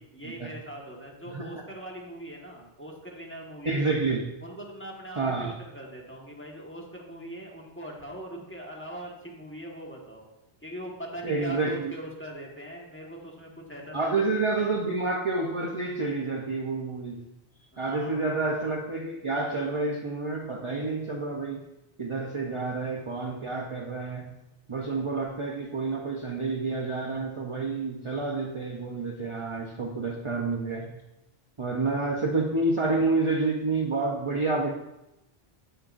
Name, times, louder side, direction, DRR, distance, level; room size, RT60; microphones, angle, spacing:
voice 1, 0.0-3.9 4.4-10.3 10.6-14.1 14.5-14.7 17.7-18.4, right 1 dB, 10° left, -2 dB, 1.4 m, -41 dB
voice 2, 3.6-4.2 5.2-5.5 11.2-11.9 13.9-17.2 17.8-21.6 22.0-24.3 24.7-30.9 31.6-34.7, right 3 dB, 35° right, 0 dB, 0.7 m, -29 dB
8.9 x 8.6 x 2.6 m, 0.92 s
omnidirectional pair, 1.1 m